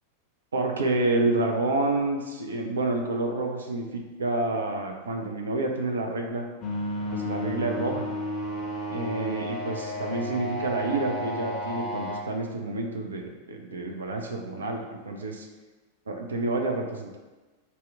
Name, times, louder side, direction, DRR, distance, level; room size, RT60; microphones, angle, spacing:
voice 1, 0.5-6.5 7.1-8.1 8.9-15.5 16.1-17.2, right 2 dB, 70° right, 3 dB, 0.3 m, -29 dB
sound 1, 6.6-12.2, left 1 dB, 30° left, 0.5 m, -32 dB
2.8 x 2.0 x 3.4 m, 1.2 s
figure-of-eight pair, 90°, 0 cm